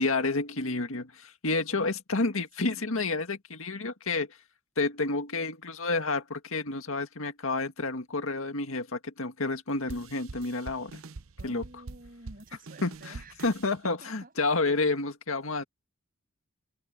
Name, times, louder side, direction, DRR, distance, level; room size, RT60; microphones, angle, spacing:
voice 1, 0.0-4.4 4.8-10.9 11.4-11.6 12.8-15.6, left 3 dB, 75° left, 1.9 m, -30 dB
voice 2, 2.6-3.0 11.4-13.6 14.0-14.3, right 1 dB, 45° right, 7.1 m, -51 dB
sound 1, 9.9-13.7, right 3 dB, 75° right, 0.8 m, -44 dB
head